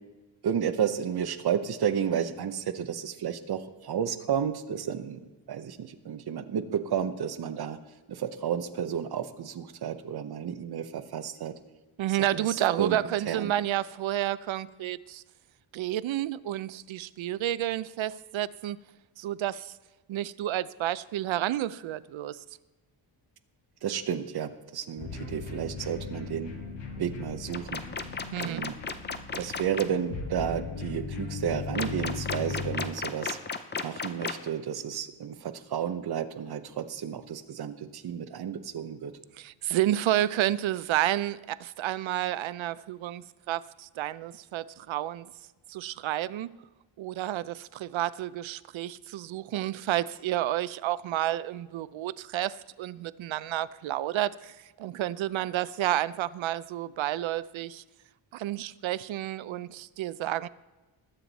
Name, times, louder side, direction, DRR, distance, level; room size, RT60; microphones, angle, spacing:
voice 1, 0.4-5.2 5.5-7.8 8.1-11.5 12.2-13.0 13.3-13.5 23.8-26.5 27.0-27.8 28.4-28.7 29.3-33.4 33.8-39.1, right 8 dB, 50° right, 0.8 m, -32 dB
voice 2, 12.0-15.2 15.7-18.8 19.2-19.7 20.1-22.4 28.3-28.6 39.4-45.3 45.7-46.5 47.0-57.8 58.3-60.5, right 13 dB, 70° right, 0.5 m, -30 dB
sound 1, 25.0-32.8, left 4 dB, 65° left, 1.8 m, -38 dB
sound 2, 27.5-29.8 31.7-34.5, left 5 dB, 25° left, 0.5 m, -33 dB
20.0 x 7.8 x 4.0 m
wide cardioid pair, 180°, 48 cm